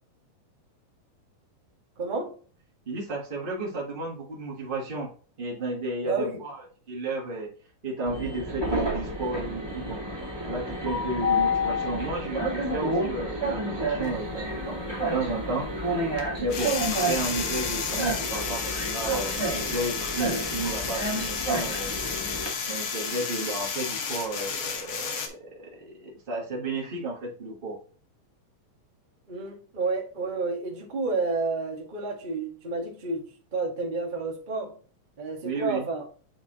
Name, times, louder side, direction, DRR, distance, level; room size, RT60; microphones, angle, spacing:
voice 1, 2.0-2.3 6.0-6.4 29.3-34.8 35.2-36.0, right 3 dB, 45° right, 0 dB, 0.6 m, -30 dB
voice 2, 2.9-5.1 5.4-6.6 6.9-7.5 7.8-10.0 10.5-15.7 16.4-21.9 22.7-27.8 35.4-35.9, right 2 dB, 90° right, -2 dB, 0.4 m, -33 dB
Train, 8.1-22.5, equal, 10° right, 1.1 m, -30 dB
sound 1, 14.0-14.1 16.2-25.3, left 6 dB, 65° left, 1.2 m, -32 dB
8.8 x 4.4 x 3.0 m, 0.40 s
omnidirectional pair, 3.8 m